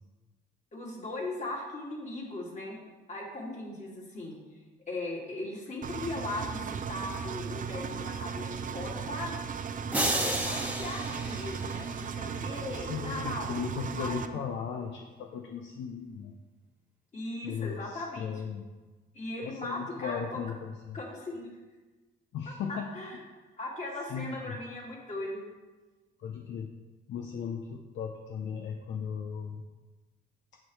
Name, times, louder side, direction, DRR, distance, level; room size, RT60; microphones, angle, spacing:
voice 1, 0.7-2.8 3.1-4.4 4.9-9.3 10.0-13.5 14.0-14.2 17.1-18.4 19.1-20.4 20.9-21.6 22.7-23.2 23.6-25.4, left 2 dB, 35° left, -2 dB, 2.3 m, -38 dB
Engine, 5.8-14.3, right 6 dB, 45° right, 0.5 m, -36 dB
sound 1, 9.9-12.3, right 1 dB, 5° right, 1.2 m, -32 dB
voice 2, 12.7-16.3 17.4-18.6 19.4-21.0 22.3-22.9 24.1-24.6 26.2-26.7 27.1-29.6, left 7 dB, 70° left, 3 dB, 0.6 m, -37 dB
9.3 x 6.5 x 3.1 m, 1.2 s
cardioid pair, 90°, 20 cm